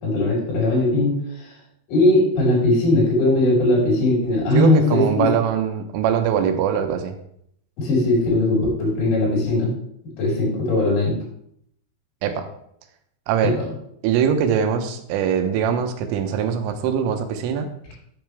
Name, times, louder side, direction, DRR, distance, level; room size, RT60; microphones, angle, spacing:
voice 1, 0.0-1.5 1.9-5.3 7.8-9.7 10.2-11.2 13.4-13.6, left 2 dB, 80° left, -4 dB, 7.1 m, -19 dB
voice 2, 4.5-7.1 12.2-12.4 13.3-13.6 14.0-17.7, right 8 dB, 85° right, 7 dB, 3.5 m, -22 dB
9.9 x 9.2 x 3.5 m, 0.71 s
omnidirectional pair, 5.6 m